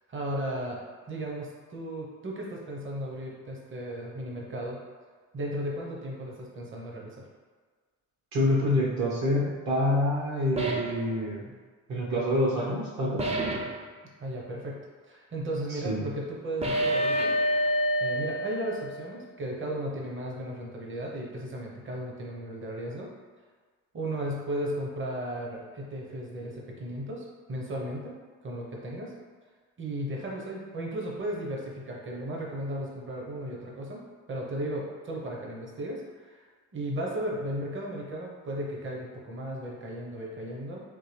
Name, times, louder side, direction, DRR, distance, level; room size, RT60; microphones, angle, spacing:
voice 1, 0.1-0.8 1.1-4.8 5.3-7.2 14.2-14.8 15.1-17.4 18.0-23.1 23.9-28.1 28.4-29.1 29.8-34.0 34.3-36.5 36.7-40.8, right 1 dB, 40° right, -2 dB, 0.9 m, -35 dB
voice 2, 8.3-11.5 11.9-13.3 15.7-16.0, left 1 dB, 65° right, -4 dB, 1.1 m, -27 dB
sound 1, 10.6-11.0 13.2-13.8 16.6-19.1, right 1 dB, 20° right, 0.5 m, -27 dB
3.7 x 2.6 x 3.2 m, 1.5 s
cardioid pair, 90°, 30 cm